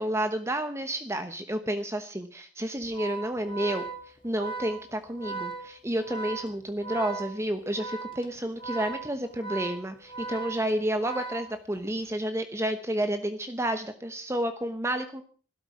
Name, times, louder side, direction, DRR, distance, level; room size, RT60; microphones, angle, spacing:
voice 1, 0.0-3.8 4.2-15.2, right 1 dB, 15° right, 9 dB, 1.0 m, -30 dB
Organ, 2.8-12.0, right 4 dB, 25° left, 2.1 m, -38 dB
16.0 x 13.0 x 6.0 m, 0.42 s
head